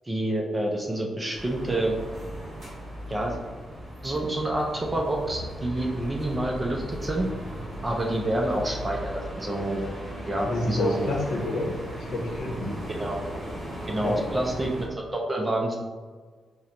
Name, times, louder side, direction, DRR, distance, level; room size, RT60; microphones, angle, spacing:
voice 1, 0.1-2.0 3.1-3.4 4.0-7.3 7.8-9.8 10.3-11.1 12.9-13.2 13.9-14.9 15.1-15.8, right 1 dB, 15° right, 0 dB, 0.4 m, -28 dB
sound 1, 1.3-14.9, equal, 35° right, 1.4 m, -37 dB
voice 2, 10.4-11.7 12.1-12.8 14.0-14.2, left 1 dB, 65° left, 0 dB, 0.8 m, -28 dB
4.3 x 2.1 x 3.8 m, 1.5 s
wide cardioid pair, 170°, 0 cm